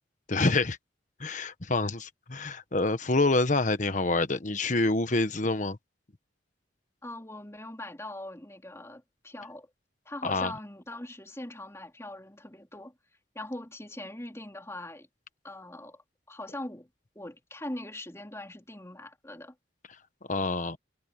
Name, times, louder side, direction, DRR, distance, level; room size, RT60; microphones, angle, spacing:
voice 1, 0.3-0.8 1.2-5.8 10.2-10.5 20.3-20.8, left 2 dB, 45° left, 1.3 m, -27 dB
voice 2, 7.0-9.7 10.0-12.9 13.3-15.1 15.4-16.0 16.3-16.9 17.1-19.5, left 1 dB, 15° left, 3.4 m, -41 dB
head